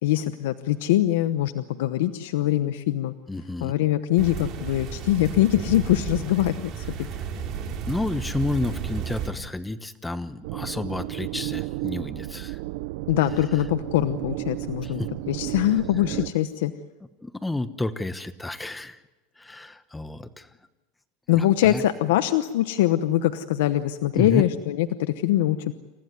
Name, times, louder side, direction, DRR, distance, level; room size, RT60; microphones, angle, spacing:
voice 1, 0.0-3.1 3.6-6.9 13.1-16.7 21.3-25.7, left 13 dB, 80° left, 10 dB, 0.9 m, -23 dB
voice 2, 3.3-3.7 7.9-12.6 14.8-15.1 17.2-19.0 19.4-20.5 21.3-21.8 24.1-24.5, left 2 dB, 10° left, 12 dB, 1.1 m, -30 dB
sound 1, 4.2-9.3, right 7 dB, 40° right, 4.3 m, -33 dB
sound 2, 10.4-16.3, right 19 dB, 70° right, 0.7 m, -33 dB
28.0 x 15.0 x 9.6 m, 1.1 s
supercardioid pair, 135°, 0 cm